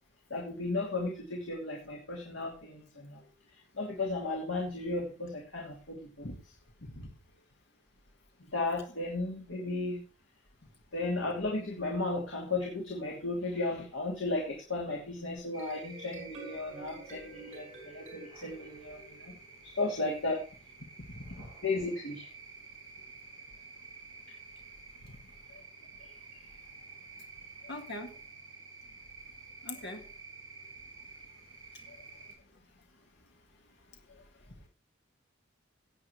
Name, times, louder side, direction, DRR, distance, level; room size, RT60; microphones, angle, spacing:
voice 1, 0.3-3.2 3.8-6.3 8.5-10.0 10.9-19.3 19.7-20.4 21.6-22.3 25.5-25.6 27.6-27.7, left 2 dB, 80° left, -1 dB, 2.8 m, -34 dB
sound 1, 15.4-19.7, right 2 dB, 40° right, 5.1 m, -49 dB
sound 2, 15.5-32.3, right 4 dB, 25° right, 7.1 m, -51 dB
voice 2, 21.2-21.5 25.0-25.1 27.7-28.1 29.6-30.0, left 1 dB, 60° left, 4 dB, 1.8 m, -41 dB
16.5 x 8.7 x 3.2 m, 0.34 s
head